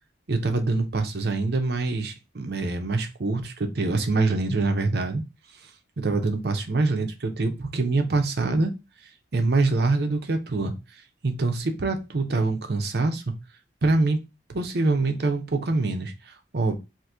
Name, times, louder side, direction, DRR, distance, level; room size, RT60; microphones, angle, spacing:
voice 1, 0.3-5.2 6.0-8.7 9.3-10.7 11.2-13.2 13.8-14.2 14.5-16.8, right 3 dB, 60° right, 0.6 m, -25 dB
2.9 x 2.5 x 3.5 m
head